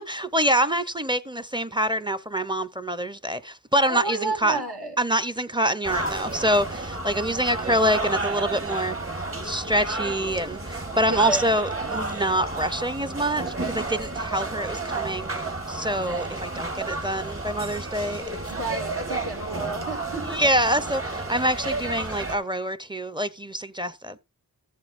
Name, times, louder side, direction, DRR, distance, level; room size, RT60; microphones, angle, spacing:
voice 1, 0.0-4.6 5.0-9.0 9.4-15.3 15.7-18.2 20.3-24.2, right 1 dB, 10° right, 0.6 m, -25 dB
voice 2, 3.9-5.0 11.1-11.5 18.5-20.4, right 2 dB, 75° right, 2.5 m, -31 dB
sound 1, 5.8-22.4, right 2 dB, 35° right, 1.5 m, -31 dB
14.5 x 7.5 x 2.5 m
wide cardioid pair, 40°, 39 cm